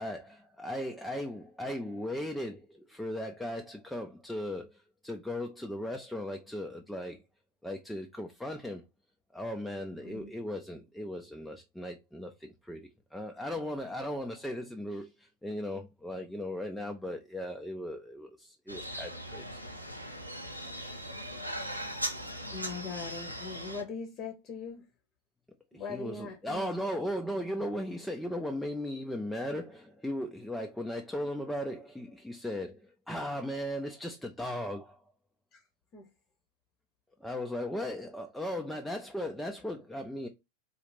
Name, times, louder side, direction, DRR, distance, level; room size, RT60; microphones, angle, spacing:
voice 1, 0.0-7.2 7.6-8.8 9.3-19.4 25.9-35.0 37.2-40.3, left 1 dB, 5° left, 0.4 m, -37 dB
voice 2, 10.0-10.3 22.5-24.8 25.7-26.9 35.5-35.6 35.9-36.1, left 4 dB, 35° left, 0.8 m, -41 dB
sound 1, 18.7-23.8, equal, 90° right, 0.6 m, -39 dB
3.9 x 2.4 x 3.2 m
figure-of-eight pair, 90°, 0 cm